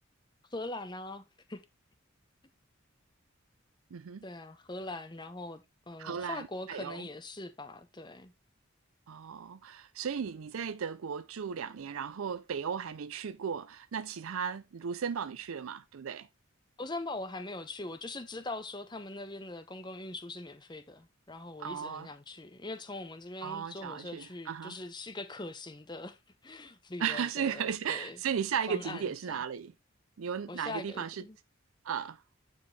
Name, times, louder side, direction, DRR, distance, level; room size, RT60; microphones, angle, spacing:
voice 1, 0.5-1.2 1.5-1.6 4.2-8.3 16.8-26.2 26.4-28.2 28.7-29.4 30.5-31.4, left 2 dB, 20° left, 0.8 m, -42 dB
voice 2, 3.9-4.2 6.0-7.0 9.1-16.3 21.6-22.1 23.4-24.8 27.0-29.7 30.2-31.2 31.8-32.2, right 7 dB, 80° right, 0.4 m, -35 dB
9.4 x 4.7 x 3.2 m
head